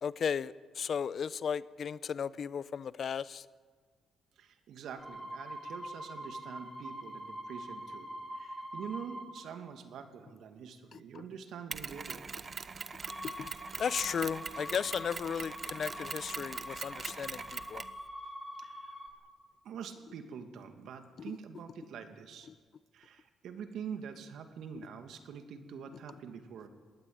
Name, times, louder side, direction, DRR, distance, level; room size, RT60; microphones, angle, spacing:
voice 1, 0.0-3.4 13.4-13.5 13.8-17.8, left 7 dB, 55° left, 18 dB, 0.7 m, -35 dB
voice 2, 4.4-12.2 18.6-19.3 19.6-22.5 22.9-26.7, right 7 dB, 75° right, 7 dB, 2.4 m, -45 dB
sound 1, 5.0-9.3 13.0-19.1, equal, 5° right, 4.4 m, -44 dB
Mechanisms, 11.7-18.0, right 5 dB, 35° right, 1.1 m, -42 dB
21.5 x 17.5 x 8.9 m, 1.5 s
cardioid pair, 90°, 0 cm